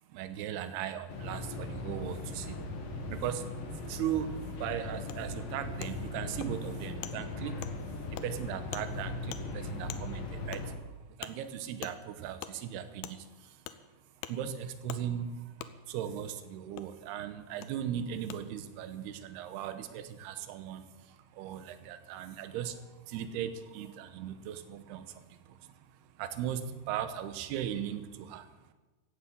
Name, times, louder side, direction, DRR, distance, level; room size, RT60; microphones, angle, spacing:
voice 1, 0.1-2.6 3.1-7.8 8.1-10.8 11.2-13.6 14.3-28.6, right 10 dB, 75° right, 10 dB, 3.0 m, -38 dB
sound 1, 1.1-10.7, left 2 dB, 60° left, 3.3 m, -39 dB
Wood, 5.1-5.2 5.8-5.9 6.4-6.5 7.0-7.1 7.6-7.7 8.2-8.3 8.7-8.9 9.3-9.4 9.9-10.0 10.5-10.6 11.2-11.3 11.8-12.0 12.4-12.5 13.0-13.2 13.7-13.8 14.2-14.3 14.9-15.0 15.6-15.7 16.8-16.9 17.6-17.7 18.3-18.4, left 13 dB, 75° left, 2.6 m, -41 dB
15.5 x 9.6 x 8.4 m, 1.2 s
omnidirectional pair, 4.8 m